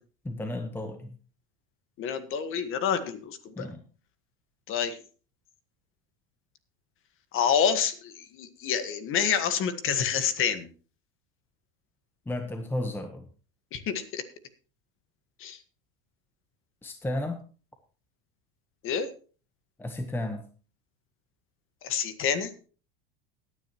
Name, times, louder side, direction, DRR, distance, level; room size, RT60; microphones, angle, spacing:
voice 1, 0.2-1.1 3.6-3.8 12.2-13.3 16.8-17.4 19.8-20.5, left 1 dB, 5° left, 6 dB, 1.0 m, -33 dB
voice 2, 2.0-3.7 4.7-5.0 7.3-10.7 13.7-14.2 15.4-15.6 18.8-19.1 21.8-22.5, left 7 dB, 45° left, 11 dB, 1.5 m, -28 dB
17.0 x 9.6 x 3.0 m, 0.38 s
supercardioid pair, 130°, 30 cm